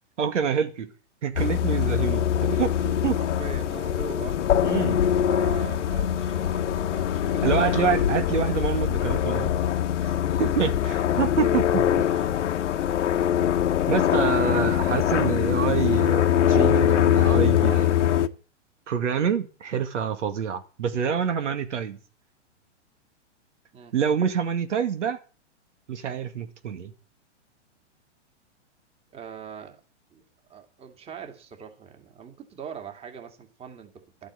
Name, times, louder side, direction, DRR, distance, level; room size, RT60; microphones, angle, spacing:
voice 1, 0.2-0.9 1.2-3.2 4.6-5.0 7.4-9.6 10.0-10.1 10.4-12.3 13.9-18.0 18.9-22.0 23.9-25.2 25.9-26.9, right 7 dB, 80° right, 2.2 m, -27 dB
sound 1, 1.4-18.3, left 10 dB, 80° left, 1.3 m, -23 dB
voice 2, 3.2-4.4 5.3-7.8 10.3-10.5 13.8-14.0 23.7-23.9 29.1-29.8 30.1-30.2 30.5-34.3, right 6 dB, 15° right, 2.4 m, -41 dB
12.5 x 8.8 x 8.4 m
hypercardioid pair, 140°, 36 cm